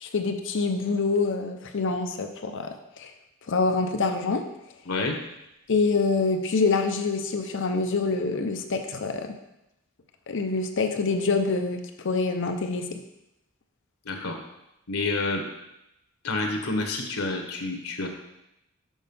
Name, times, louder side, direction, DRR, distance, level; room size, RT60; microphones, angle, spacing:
voice 1, 0.0-3.1 3.5-4.4 5.7-9.3 10.3-13.0, left 4 dB, 60° left, 6 dB, 0.7 m, -26 dB
voice 2, 4.9-5.2 14.0-14.4 14.9-15.4 16.2-18.1, left 3 dB, 90° left, 3 dB, 1.2 m, -28 dB
6.3 x 5.2 x 5.4 m, 0.88 s
head